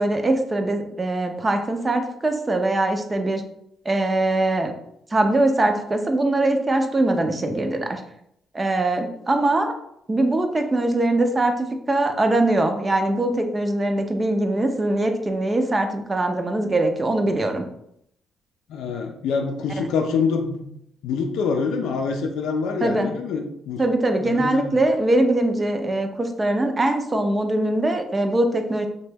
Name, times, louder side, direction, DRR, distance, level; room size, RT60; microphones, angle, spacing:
voice 1, 0.0-3.4 3.9-4.7 5.1-8.0 8.5-9.7 10.1-17.6 22.8-23.1 23.8-28.9, right 2 dB, 25° right, 5 dB, 0.4 m, -22 dB
voice 2, 18.7-20.6 21.0-23.8 24.2-24.8, left 5 dB, 85° left, 4 dB, 0.4 m, -25 dB
2.9 x 2.2 x 3.3 m, 0.76 s
cardioid pair, 90°, 0 cm